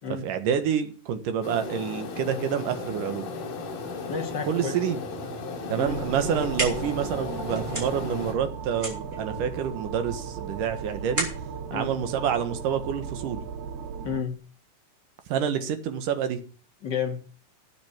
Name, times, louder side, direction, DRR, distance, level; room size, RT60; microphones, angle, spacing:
voice 1, 0.2-3.3 4.4-5.0 5.7-11.3 11.7-13.4 15.3-16.4, right 8 dB, 65° right, 9 dB, 2.8 m, -28 dB
sound 1, 1.4-8.3, left 3 dB, 70° left, 4.7 m, -35 dB
voice 2, 4.1-4.8 5.8-6.0 11.7-11.9 14.0-14.4 16.8-17.2, left 5 dB, 45° left, 4 dB, 1.4 m, -31 dB
sound 2, 5.8-14.2, right 6 dB, 85° right, 3.4 m, -37 dB
sound 3, 6.2-13.0, right 1 dB, 20° right, 5.1 m, -36 dB
12.5 x 9.6 x 6.0 m, 0.40 s
omnidirectional pair, 4.4 m